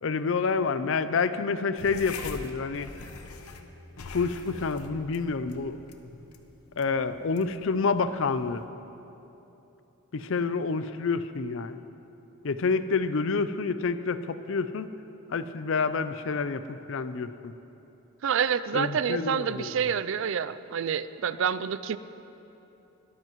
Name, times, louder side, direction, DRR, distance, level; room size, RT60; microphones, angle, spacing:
voice 1, 0.0-2.9 4.1-5.8 6.8-8.6 10.1-11.8 12.4-14.9 15.3-17.5 18.7-19.7, left 4 dB, 60° left, 12 dB, 0.5 m, -28 dB
sound 1, 1.8-8.7, left 3 dB, 85° left, 0.9 m, -44 dB
voice 2, 18.2-22.0, right 7 dB, 60° right, 15 dB, 0.3 m, -28 dB
21.0 x 13.0 x 3.1 m, 3.0 s
head